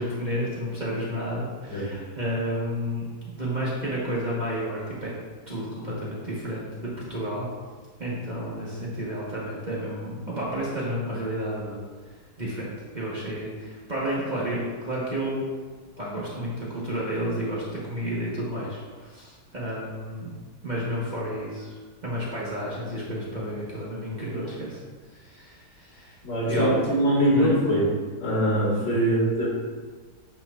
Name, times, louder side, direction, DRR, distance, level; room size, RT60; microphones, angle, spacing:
voice 1, 0.0-3.1 3.4-5.1 5.5-7.5 8.0-11.9 12.4-15.4 16.0-20.3 20.6-24.8 25.2-26.2 26.5-26.8 27.2-27.6 28.8-29.0, equal, 30° right, -7 dB, 1.2 m, -31 dB
voice 2, 26.2-27.9 28.2-29.5, right 1 dB, 80° left, -6 dB, 2.7 m, -22 dB
8.7 x 5.7 x 2.5 m, 1.5 s
omnidirectional pair, 1.9 m